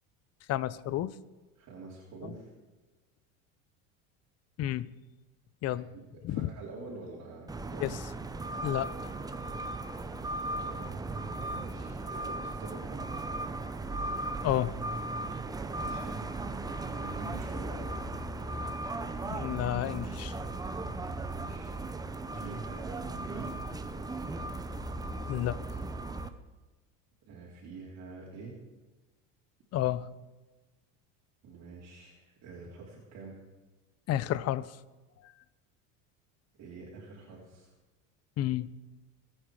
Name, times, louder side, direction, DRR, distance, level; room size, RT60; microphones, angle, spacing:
voice 1, 0.5-1.1 2.2-2.4 4.6-4.9 5.6-5.9 6.2-6.5 7.8-8.0 8.6-9.1 14.4-14.8 19.3-20.3 25.3-25.6 29.7-30.1 34.1-34.7 38.4-38.7, left 13 dB, 40° left, 18 dB, 0.7 m, -31 dB
voice 2, 1.6-2.5 5.7-7.9 10.6-13.1 15.6-16.2 16.9-18.0 21.3-23.6 27.2-28.6 31.4-33.4 36.6-37.7, right 3 dB, 45° right, -4 dB, 3.6 m, -46 dB
sound 1, 7.5-26.3, right 2 dB, 10° right, 0.8 m, -37 dB
23.5 x 9.0 x 4.9 m, 1.2 s
supercardioid pair, 125°, 38 cm